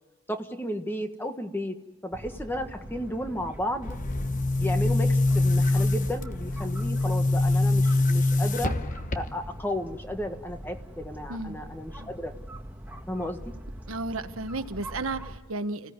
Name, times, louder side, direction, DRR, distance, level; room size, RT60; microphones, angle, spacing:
voice 1, 0.3-1.8 2.0-4.0 4.6-8.7 9.1-12.3 13.1-13.4, equal, 10° left, 6 dB, 1.5 m, -33 dB
sound 1, 2.1-15.4, equal, 10° right, 1.7 m, -42 dB
Boom, 3.8-9.6, left 2 dB, 40° left, 1.1 m, -24 dB
voice 2, 11.3-11.6 12.0-12.1 13.9-15.9, right 2 dB, 90° right, 9 dB, 1.2 m, -33 dB
30.0 x 17.0 x 9.6 m, 1.2 s
head